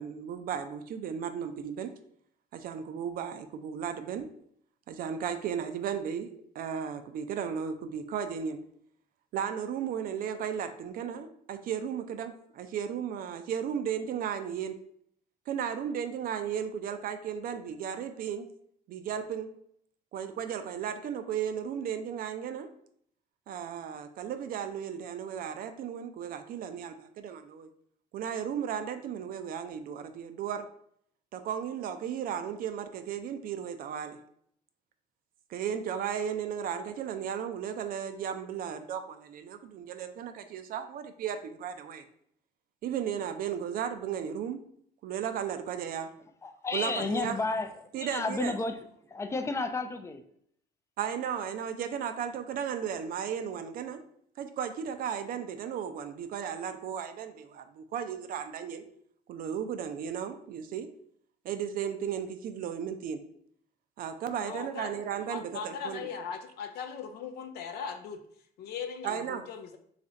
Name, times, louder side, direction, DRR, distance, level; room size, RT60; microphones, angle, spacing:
voice 1, 0.0-1.9 2.5-4.3 4.9-6.3 6.5-8.6 9.3-14.8 15.5-18.5 18.9-19.5 20.1-22.7 23.5-27.7 28.1-30.7 31.3-34.2 35.5-42.1 42.8-44.6 45.0-46.1 46.7-47.4 47.9-48.6 51.0-54.0 54.4-58.8 59.3-60.9 61.4-63.2 64.0-66.1 69.0-69.4, right 8 dB, 60° right, 9 dB, 0.4 m, -35 dB
voice 2, 46.4-47.7 48.0-48.8 49.1-50.2, left 3 dB, 15° left, 8 dB, 0.4 m, -31 dB
voice 3, 64.4-68.2 68.6-69.8, left 6 dB, 70° left, 7 dB, 0.6 m, -39 dB
3.2 x 2.5 x 3.9 m, 0.67 s
cardioid pair, 110°, 17 cm